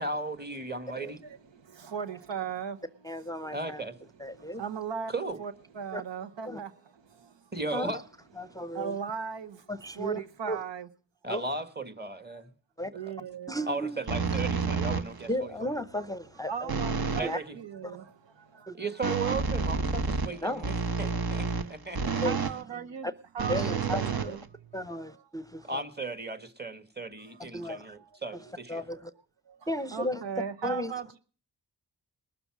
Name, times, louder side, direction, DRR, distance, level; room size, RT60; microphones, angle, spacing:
voice 1, 0.0-1.2 3.5-3.9 5.1-5.4 7.5-8.0 11.2-12.5 13.7-15.5 17.1-17.5 18.7-22.0 25.7-28.8, right 2 dB, 25° right, 1.7 m, -36 dB
voice 2, 0.7-3.8 4.3-5.1 5.4-7.5 8.4-9.7 9.9-10.9 12.3-12.4 12.9-13.6 15.9-16.0 16.5-18.8 20.2-20.4 21.1-23.1 23.3-24.4 24.9-25.3 25.6-25.7 27.2-28.5 28.9-29.0 29.4-31.2, right 7 dB, 85° right, 1.0 m, -39 dB
voice 3, 3.0-3.8 4.2-4.6 5.9-6.0 6.5-6.6 7.7-7.9 8.4-8.9 9.7-10.2 10.5-10.6 11.3-11.4 12.8-12.9 13.5-14.0 15.3-16.7 17.2-17.4 17.8-18.0 18.7-18.8 20.4-20.7 22.2-22.4 23.0-23.1 23.5-24.4 24.7-25.8 27.4-27.8 28.7-29.1 29.7-30.2 30.6-30.9, equal, 10° left, 0.7 m, -34 dB
sound 1, 14.1-15.3 16.7-17.3 19.0-22.6 23.4-24.9, right 5 dB, 60° right, 1.1 m, -30 dB
20.5 x 6.9 x 6.0 m
cardioid pair, 60°, 42 cm